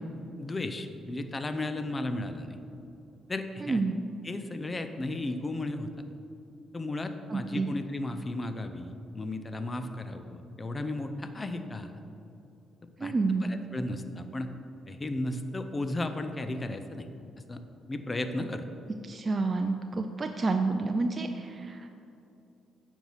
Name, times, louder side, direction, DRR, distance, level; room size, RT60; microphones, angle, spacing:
voice 1, 0.4-2.6 3.3-3.8 4.2-5.9 6.7-11.9 13.0-13.1 13.4-14.5 14.9-17.1 17.5-17.6 17.9-18.7, left 2 dB, 25° left, 8 dB, 0.6 m, -34 dB
voice 2, 3.6-3.9 7.3-7.7 13.0-13.5 19.0-21.9, right 3 dB, 30° right, 5 dB, 0.4 m, -29 dB
9.3 x 4.6 x 5.8 m, 2.8 s
cardioid pair, 90°, 0 cm